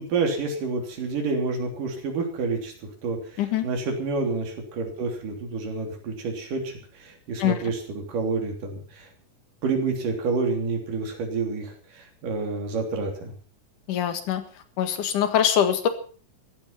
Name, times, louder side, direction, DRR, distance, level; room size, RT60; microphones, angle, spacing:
voice 1, 0.0-2.7 3.0-9.1 9.6-13.3, right 4 dB, 80° right, 3 dB, 4.9 m, -29 dB
voice 2, 13.9-14.4 14.8-15.9, left 10 dB, 70° left, 9 dB, 3.2 m, -23 dB
15.0 x 14.5 x 5.8 m, 0.41 s
omnidirectional pair, 3.8 m